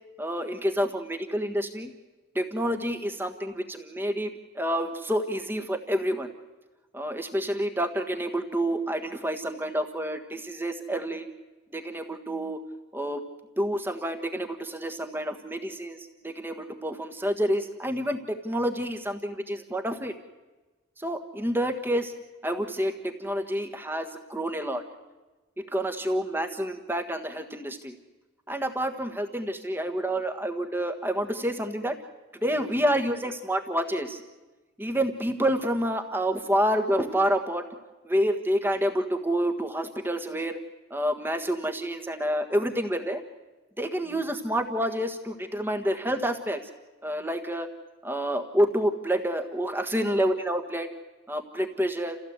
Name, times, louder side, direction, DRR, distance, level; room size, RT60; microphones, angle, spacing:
voice 1, 0.2-1.9 2.3-6.3 6.9-11.3 11.7-12.6 12.9-13.2 13.6-20.1 21.0-22.1 22.4-24.8 25.7-28.0 28.5-32.0 32.4-34.2 34.8-37.6 38.0-40.6 40.9-43.2 43.8-46.6 47.0-47.7 48.0-50.9 51.3-52.2, equal, 10° right, 7 dB, 1.5 m, -28 dB
29.5 x 15.5 x 8.1 m, 1.2 s
head